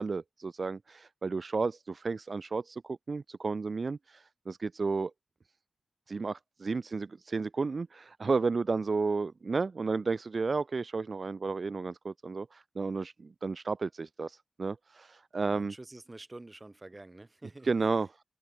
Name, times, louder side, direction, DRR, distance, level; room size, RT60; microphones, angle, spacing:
voice 1, 0.0-5.1 6.1-15.7 17.6-18.1, right 4 dB, 40° right, 1.0 m, -32 dB
voice 2, 15.4-17.9, right 2 dB, 20° right, 4.6 m, -48 dB
open air
wide cardioid pair, 130°, 0 cm